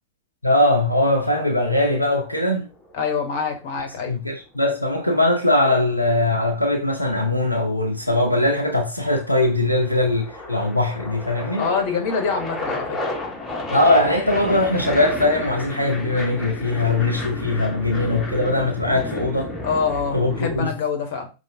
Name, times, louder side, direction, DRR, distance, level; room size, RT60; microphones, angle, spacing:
voice 1, 0.4-2.7 4.1-11.7 13.7-19.5 20.1-20.7, left 2 dB, 90° left, 0.6 m, -21 dB
sound 1, 2.7-3.9 5.7-7.0 7.9-8.4 8.7-20.6, left 2 dB, 15° left, 1.5 m, -32 dB
voice 2, 2.9-4.1 11.6-13.1 19.6-21.3, left 5 dB, 50° left, 1.1 m, -25 dB
5.3 x 3.1 x 2.7 m
figure-of-eight pair, 90°, 0 cm